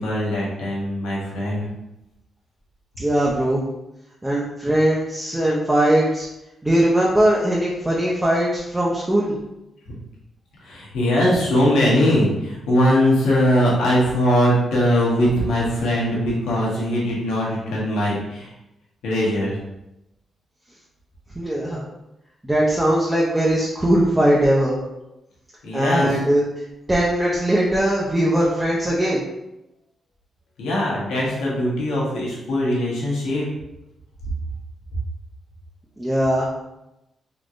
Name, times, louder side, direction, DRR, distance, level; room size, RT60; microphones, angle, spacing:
voice 1, 0.0-1.7 10.6-18.5 19.0-19.5 25.6-26.2 30.6-33.5, equal, 90° left, -5 dB, 1.1 m, -21 dB
voice 2, 3.0-3.6 4.2-6.3 6.6-9.4 21.3-21.8 22.4-24.8 25.7-26.4 26.9-29.2 36.0-36.5, right 1 dB, 15° right, -5 dB, 0.7 m, -20 dB
3.6 x 2.9 x 2.5 m, 0.91 s
cardioid pair, 70°, 0 cm